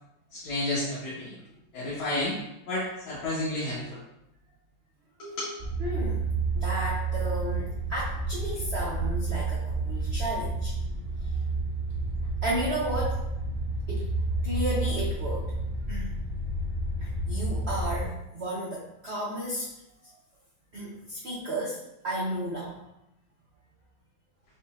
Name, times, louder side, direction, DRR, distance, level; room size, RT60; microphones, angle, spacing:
voice 1, 0.3-1.4 1.7-2.4 2.7-4.0 5.2-5.5, left 1 dB, 75° left, -8 dB, 1.9 m, -31 dB
sound 1, 5.6-18.1, right 2 dB, 30° right, 0.6 m, -30 dB
voice 2, 5.8-6.2 6.5-10.7 11.2-11.4 12.4-13.2 13.9-14.1 14.4-15.5 15.9-16.1 17.0-19.7 20.0-20.1 20.7-21.8 22.0-22.7, right 1 dB, 75° right, -6 dB, 0.5 m, -33 dB
6.9 x 2.8 x 2.3 m, 0.86 s
omnidirectional pair, 2.3 m